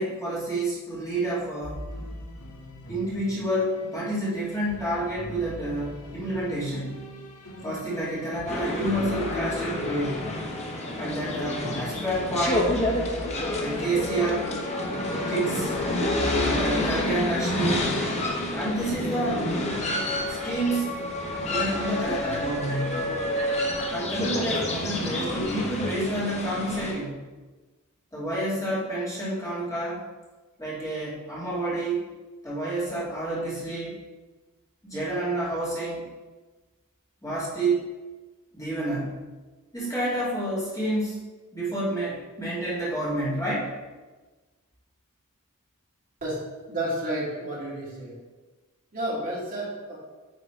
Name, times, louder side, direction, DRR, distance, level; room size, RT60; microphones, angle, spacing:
voice 1, 0.0-1.9 2.9-7.1 7.6-10.2 11.0-12.8 13.6-14.5 15.3-15.7 16.4-17.9 18.5-19.5 20.3-21.0 21.4-23.2 23.9-27.2 28.1-30.0 30.6-32.0 32.4-34.0 34.8-36.0 37.2-37.9 38.5-39.3 39.7-41.2 41.5-43.7, right 1 dB, 15° left, -9 dB, 2.3 m, -29 dB
sound 1, 1.6-18.5, equal, 85° left, 1.4 m, -42 dB
sound 2, 8.5-26.9, left 1 dB, 30° left, 1.0 m, -28 dB
voice 2, 46.2-48.2 48.9-50.0, right 1 dB, 40° right, -6 dB, 2.3 m, -31 dB
9.6 x 3.8 x 4.5 m, 1.2 s
head